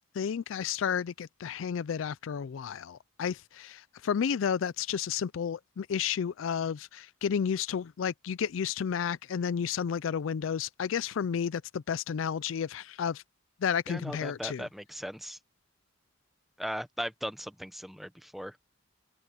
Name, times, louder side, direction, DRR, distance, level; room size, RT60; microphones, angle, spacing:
voice 1, 0.1-13.2 13.6-14.7, left 7 dB, 70° left, 0.4 m, -32 dB
voice 2, 13.9-15.4 16.6-18.7, equal, ahead, 1.1 m, -38 dB
head